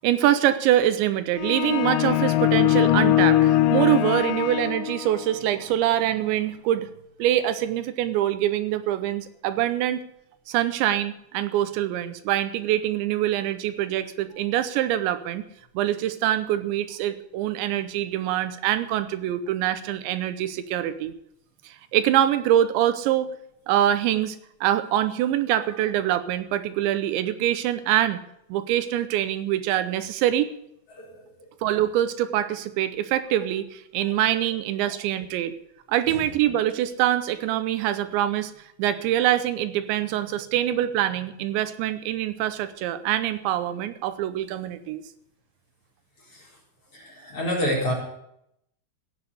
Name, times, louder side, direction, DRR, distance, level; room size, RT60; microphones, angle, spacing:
voice 1, 0.0-6.9 7.2-10.0 10.5-15.4 15.7-21.1 21.6-23.3 23.7-28.2 28.5-30.5 31.6-35.5 35.9-38.5 38.8-45.0, right 12 dB, 85° right, 11 dB, 3.2 m, -24 dB
sound 1, 1.4-5.3, left 13 dB, 90° left, 3.0 m, -21 dB
voice 2, 46.9-47.9, equal, 30° left, -3 dB, 5.0 m, -28 dB
16.0 x 7.3 x 8.3 m, 0.76 s
omnidirectional pair, 5.1 m